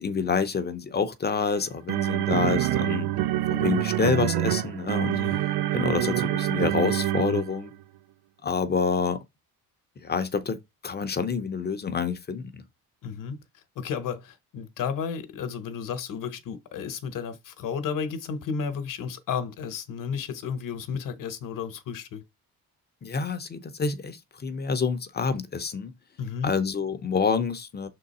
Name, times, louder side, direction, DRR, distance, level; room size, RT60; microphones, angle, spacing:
voice 1, 0.0-3.1 3.5-5.2 5.7-7.7 8.4-9.2 10.0-10.6 10.8-12.6 23.0-25.9 26.4-27.9, left 5 dB, 25° left, 0.6 m, -27 dB
sound 1, 1.3-7.7, right 13 dB, 75° right, 0.6 m, -26 dB
voice 2, 5.1-5.4 13.0-13.4 13.7-22.2 26.2-26.5, left 6 dB, 60° left, 1.0 m, -33 dB
6.1 x 3.8 x 4.1 m
cardioid pair, 160°, 37 cm